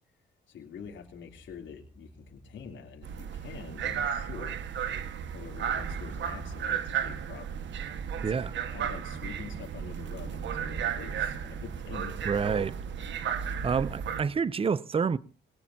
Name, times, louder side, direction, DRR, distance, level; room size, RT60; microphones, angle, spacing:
voice 1, 0.5-4.6 5.3-7.6 8.1-8.2 8.5-12.2, left 7 dB, 70° left, 3.3 m, -46 dB
sound 1, 0.8-14.4, left 1 dB, 10° right, 2.9 m, -54 dB
sound 2, 3.0-14.2, right 8 dB, 70° right, 1.6 m, -34 dB
voice 2, 8.2-8.5 12.3-12.7 13.6-15.2, right 6 dB, 30° right, 0.7 m, -28 dB
22.0 x 18.5 x 2.8 m
cardioid pair, 90°, 20 cm